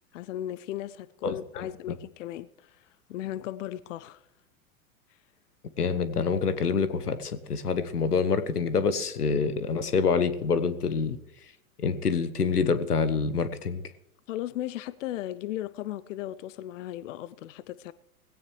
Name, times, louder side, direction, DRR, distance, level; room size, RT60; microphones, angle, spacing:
voice 1, 0.1-4.2 14.3-17.9, left 13 dB, 55° left, 0.6 m, -36 dB
voice 2, 1.2-1.7 5.8-11.2 11.8-13.8, left 5 dB, 85° left, 1.2 m, -26 dB
18.5 x 16.5 x 3.2 m
figure-of-eight pair, 100°, 45 cm